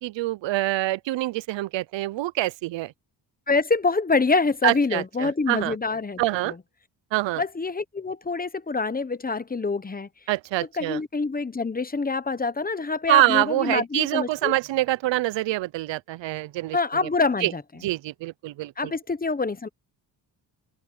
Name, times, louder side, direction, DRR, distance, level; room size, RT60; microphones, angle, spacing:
voice 1, 0.0-2.9 4.6-5.7 6.2-6.5 7.1-7.4 10.3-11.0 13.1-16.8 17.4-17.5 17.8-18.9, right 16 dB, 85° right, 0.7 m, -25 dB
voice 2, 3.5-6.6 7.4-10.1 10.7-14.5 16.7-17.6 18.8-19.7, left 3 dB, 20° left, 1.0 m, -26 dB
open air
cardioid pair, 100°, 43 cm